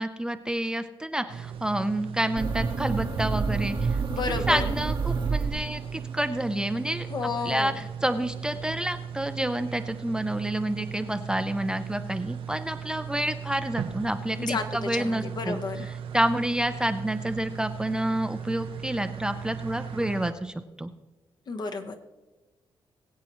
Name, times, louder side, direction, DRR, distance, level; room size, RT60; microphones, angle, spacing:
voice 1, 0.0-7.1 7.4-20.9, right 1 dB, 10° right, 8 dB, 0.5 m, -29 dB
sound 1, 1.3-20.3, right 8 dB, 75° right, 0.7 m, -37 dB
sound 2, 2.4-6.1, right 5 dB, 50° right, 1.0 m, -28 dB
voice 2, 4.1-4.6 7.1-7.7 14.4-15.9 21.5-22.0, left 4 dB, 50° left, 6 dB, 1.1 m, -31 dB
21.0 x 8.4 x 3.1 m, 1.1 s
cardioid pair, 120°, 9 cm